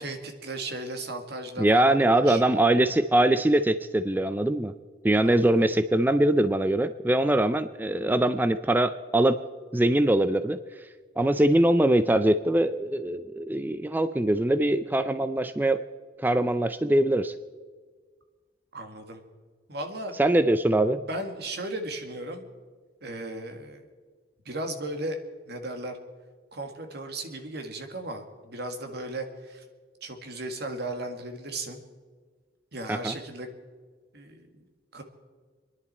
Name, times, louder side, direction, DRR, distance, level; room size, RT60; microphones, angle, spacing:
voice 1, 0.0-2.6 5.2-5.7 18.7-19.2 19.7-20.2 21.1-22.5 23.0-23.8 24.5-25.2 25.5-26.0 26.5-29.6 30.0-31.8 32.7-33.5 34.1-34.6 34.9-35.0, right 1 dB, 60° right, 6 dB, 1.9 m, -36 dB
voice 2, 1.6-4.7 5.0-9.4 9.7-10.6 11.2-15.8 16.2-17.3 20.2-21.0 32.9-33.1, right 1 dB, 10° right, 11 dB, 0.4 m, -22 dB
27.5 x 10.5 x 4.3 m, 1.5 s
head